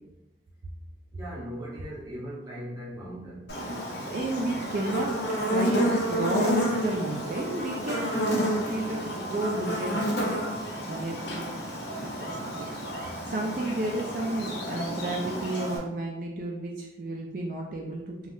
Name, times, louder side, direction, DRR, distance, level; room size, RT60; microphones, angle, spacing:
voice 1, 1.1-3.7, equal, 20° right, -6 dB, 0.8 m, -39 dB
Buzz, 3.5-15.8, equal, 65° left, 0.7 m, -30 dB
voice 2, 4.1-5.1 5.4-8.1 8.7-10.4 10.9-11.5 12.0-12.7 13.3-18.3, right 2 dB, 45° right, -1 dB, 0.3 m, -32 dB
3.4 x 2.3 x 2.6 m, 0.96 s
head